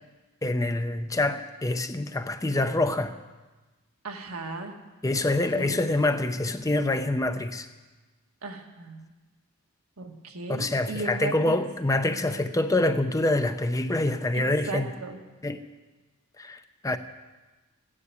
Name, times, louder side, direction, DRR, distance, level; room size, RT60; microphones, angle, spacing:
voice 1, 0.4-3.2 5.0-7.7 10.5-14.9 15.4-15.6 16.4-17.0, left 2 dB, 15° left, 8 dB, 0.6 m, -26 dB
voice 2, 4.0-4.7 5.5-5.8 8.4-9.1 10.0-11.6 14.3-15.2, right 3 dB, 85° right, 3 dB, 1.6 m, -36 dB
14.5 x 9.8 x 8.2 m, 1.2 s
head